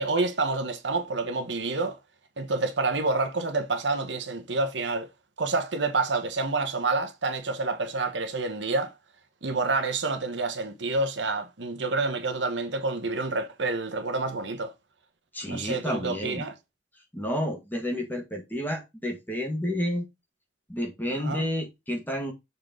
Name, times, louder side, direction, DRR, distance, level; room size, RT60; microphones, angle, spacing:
voice 1, 0.0-2.0 2.4-5.1 5.4-8.9 9.4-14.7 15.5-16.5 21.2-21.4, right 3 dB, 75° right, 1.2 m, -28 dB
voice 2, 15.3-16.5 17.1-20.1 20.7-22.3, equal, 10° left, 1.8 m, -30 dB
6.5 x 4.4 x 3.8 m
head